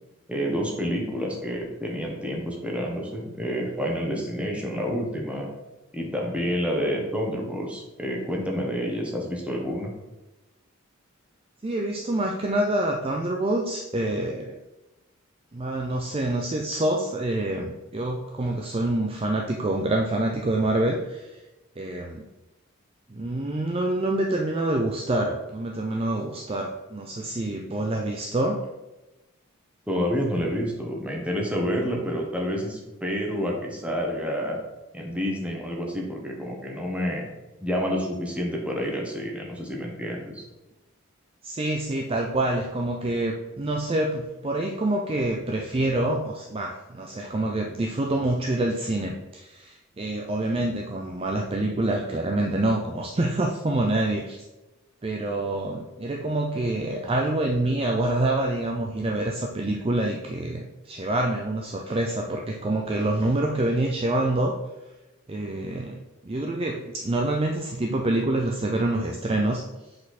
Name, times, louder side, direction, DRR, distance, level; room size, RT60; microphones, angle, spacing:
voice 1, 0.3-5.5 5.9-9.9 29.9-34.6 34.9-37.3 37.6-40.4, equal, 5° right, -1 dB, 1.2 m, -29 dB
voice 2, 11.6-14.6 15.5-21.4 21.8-22.3 23.1-28.6 41.4-54.4 55.0-64.6 65.3-69.6, right 1 dB, 25° right, 1 dB, 0.5 m, -26 dB
7.6 x 4.3 x 4.2 m, 1.0 s
head